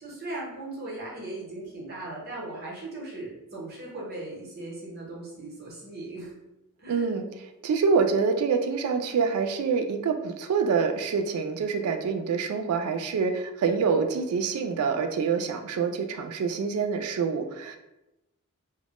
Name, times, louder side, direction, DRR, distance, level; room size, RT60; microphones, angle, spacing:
voice 1, 0.0-6.3 6.8-7.1, right 2 dB, 45° right, -5 dB, 0.8 m, -38 dB
voice 2, 6.9-17.8, right 5 dB, 90° right, 7 dB, 0.3 m, -26 dB
2.1 x 2.1 x 2.9 m, 0.93 s
head